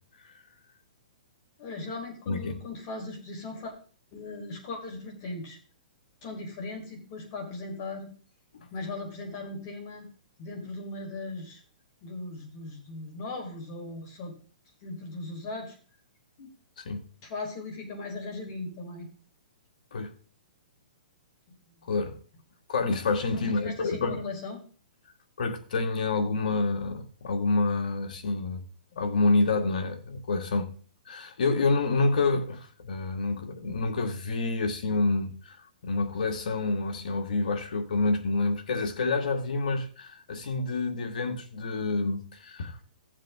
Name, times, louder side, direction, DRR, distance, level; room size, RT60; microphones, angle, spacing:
voice 1, 1.6-3.7 4.1-5.6 6.2-8.1 8.7-10.1 10.4-11.6 12.0-14.3 14.8-15.7 16.4-16.5 17.2-19.1 21.7-21.8 23.3-24.6, left 3 dB, 40° left, 4.5 m, -38 dB
voice 2, 2.3-2.6 8.5-8.7 16.8-17.0 19.9-20.1 21.8-22.2 22.7-24.3 25.4-28.6 28.9-30.7 31.1-35.6 35.8-42.8, left 3 dB, 70° left, 2.1 m, -28 dB
15.0 x 7.5 x 3.7 m
hypercardioid pair, 145°, 5 cm